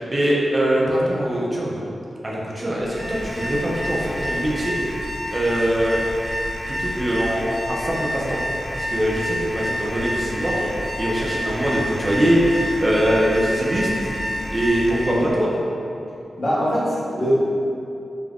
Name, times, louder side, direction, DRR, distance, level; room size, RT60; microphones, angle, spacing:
voice 1, 0.0-1.8 2.2-4.8 5.3-6.0 6.7-7.4 7.7-8.4 8.8-14.1 14.5-15.5, equal, 30° right, -5 dB, 0.4 m, -22 dB
Alarm, 2.8-15.3, equal, ahead, 1.0 m, -29 dB
voice 2, 14.9-15.3 16.4-17.3, equal, 55° left, -11 dB, 1.1 m, -23 dB
3.3 x 2.2 x 2.3 m, 2.7 s
wide cardioid pair, 110°, 0 cm